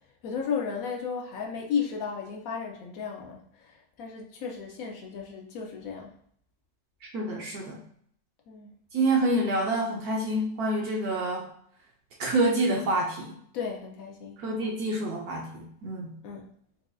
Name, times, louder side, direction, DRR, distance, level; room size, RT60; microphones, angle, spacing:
voice 1, 0.2-6.2 8.5-8.7 13.5-14.7 16.2-16.5, left 6 dB, 70° left, 1 dB, 0.9 m, -34 dB
voice 2, 7.0-7.8 8.9-11.5 12.2-13.4 14.4-16.1, right 2 dB, 70° right, -2 dB, 1.1 m, -27 dB
4.8 x 2.4 x 2.3 m, 0.64 s
omnidirectional pair, 1.8 m